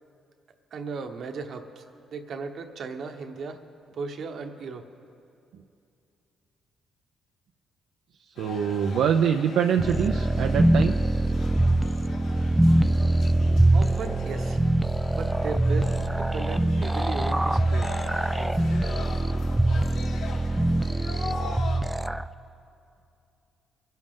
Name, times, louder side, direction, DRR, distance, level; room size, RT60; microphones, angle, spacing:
voice 1, 0.7-1.9 2.1-3.6 3.9-4.8 13.7-14.6 15.1-17.9 18.4-18.6, right 4 dB, 60° right, 6 dB, 1.1 m, -36 dB
sound 1, 8.4-21.8, left 4 dB, 80° left, 1.7 m, -41 dB
voice 2, 8.4-10.9, right 8 dB, 80° right, 4 dB, 0.5 m, -24 dB
sound 2, 9.8-22.3, right 1 dB, 10° right, 0.3 m, -23 dB
23.5 x 10.5 x 3.7 m, 2.6 s
cardioid pair, 90°, 0 cm